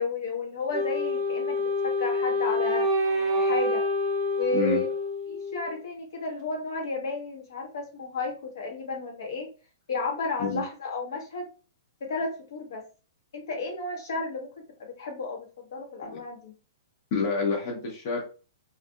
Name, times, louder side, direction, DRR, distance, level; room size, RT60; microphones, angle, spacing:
voice 1, 0.0-2.9 3.3-3.8 4.3-4.9 5.3-9.5 9.9-11.5 12.0-12.8 13.3-14.5 14.8-15.5 15.7-16.5, left 3 dB, 65° left, 1 dB, 1.0 m, -32 dB
Wind instrument woodwind instrument, 0.7-5.8, left 1 dB, 30° right, 0.5 m, -27 dB
voice 2, 17.1-18.2, left 3 dB, 40° left, -2 dB, 0.7 m, -27 dB
2.6 x 2.4 x 2.2 m, 0.36 s
hypercardioid pair, 160°, 2 cm